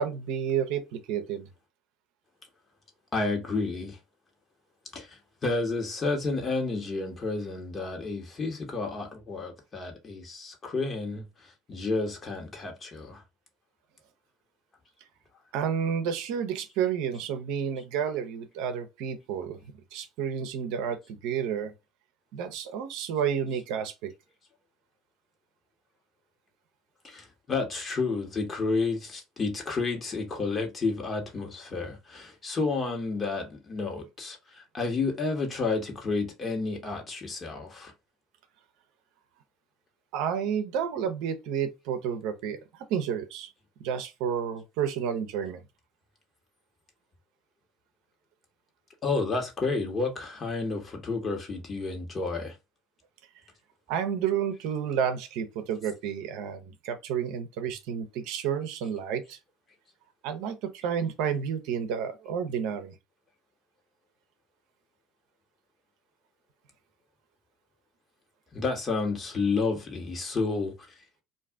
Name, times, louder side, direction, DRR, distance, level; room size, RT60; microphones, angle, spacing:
voice 1, 0.0-1.5 15.5-19.6 19.9-21.7 22.3-24.1 40.1-43.5 43.8-45.6 53.9-59.4 60.2-63.0, right 8 dB, 70° right, 0.6 m, -30 dB
voice 2, 3.1-4.0 4.9-13.2 17.8-17.9 27.0-37.9 49.0-52.5 68.5-70.7, left 3 dB, 35° left, 1.3 m, -31 dB
2.5 x 2.4 x 3.5 m
hypercardioid pair, 80°, 0 cm